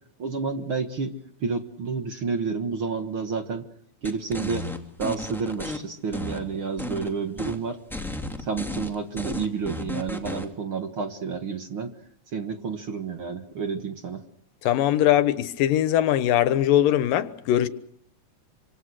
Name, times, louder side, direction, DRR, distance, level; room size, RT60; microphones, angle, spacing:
voice 1, 0.2-1.1 1.4-3.7 4.0-4.7 5.0-7.8 8.4-11.9 12.3-14.2, right 5 dB, 50° right, 1.9 m, -30 dB
sound 1, 4.0-5.8 6.1-7.1 7.4-7.6 7.9-10.5, left 2 dB, ahead, 2.4 m, -33 dB
voice 2, 14.6-17.7, left 12 dB, 80° left, 2.9 m, -21 dB
27.5 x 26.0 x 6.4 m
omnidirectional pair, 3.9 m